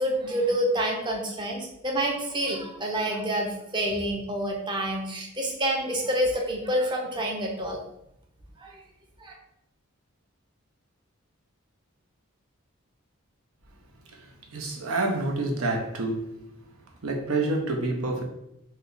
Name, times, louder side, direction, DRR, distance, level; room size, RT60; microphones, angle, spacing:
voice 1, 0.0-7.8 8.6-8.8 9.2-9.3, right 1 dB, 20° right, 0 dB, 0.5 m, -28 dB
voice 2, 14.5-16.3 17.0-18.2, right 2 dB, 80° right, 1 dB, 0.7 m, -27 dB
3.1 x 2.2 x 3.8 m, 0.81 s
head